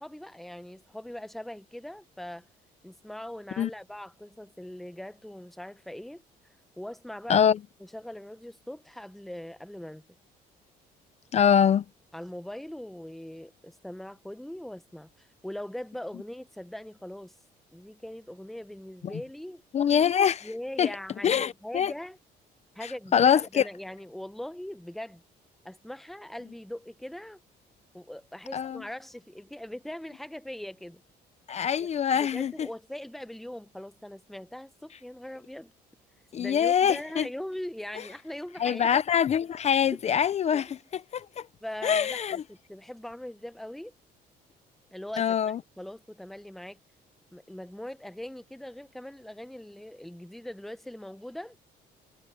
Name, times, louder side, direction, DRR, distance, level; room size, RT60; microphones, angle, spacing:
voice 1, 0.0-2.4 2.8-6.2 6.8-7.5 7.9-10.0 12.1-17.3 17.7-19.6 20.4-22.2 22.7-25.2 25.6-27.4 27.9-31.0 31.8-31.9 32.1-35.7 36.4-38.9 40.5-40.6 41.6-43.9 44.9-46.8 47.3-51.6, left 1 dB, ahead, 0.8 m, -41 dB
voice 2, 11.3-11.8 19.0-19.1 19.7-20.5 20.8-20.9 21.2-21.9 22.8-23.7 28.5-28.8 31.5-32.5 36.3-37.3 38.6-41.5 41.8-42.4 45.2-45.6, left 8 dB, 40° left, 0.6 m, -24 dB
cardioid pair, 110°, 17 cm